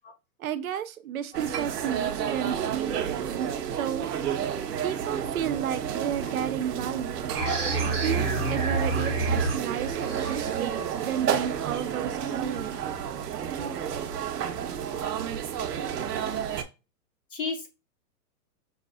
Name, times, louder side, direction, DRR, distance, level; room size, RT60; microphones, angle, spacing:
voice 1, 0.4-3.2 3.7-4.0 4.8-7.3 8.0-12.8, right 9 dB, 60° right, 0.5 m, -32 dB
sound 1, 1.3-16.6, right 8 dB, 80° right, 0.8 m, -31 dB
sound 2, 7.3-12.7, right 3 dB, 15° right, 0.9 m, -30 dB
voice 2, 17.3-17.7, left 4 dB, 35° left, 0.5 m, -35 dB
5.8 x 2.4 x 2.4 m
hypercardioid pair, 175°, 47 cm